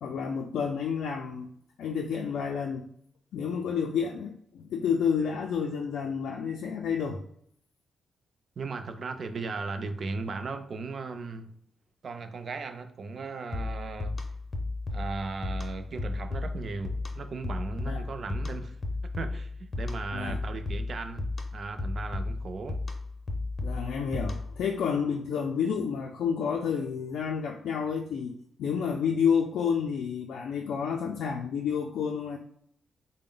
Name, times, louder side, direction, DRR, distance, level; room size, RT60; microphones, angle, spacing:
voice 1, 0.0-1.5 1.8-2.9 3.3-7.2 17.9-18.0 20.1-20.4 23.6-32.4, left 6 dB, 90° left, 0.3 m, -30 dB
voice 2, 8.6-11.5 12.0-14.2 14.9-18.8 19.0-22.8, right 4 dB, 45° right, 0.4 m, -37 dB
sound 1, 13.5-24.7, left 2 dB, 30° left, 0.5 m, -34 dB
3.7 x 2.0 x 3.7 m
wide cardioid pair, 140°, 0 cm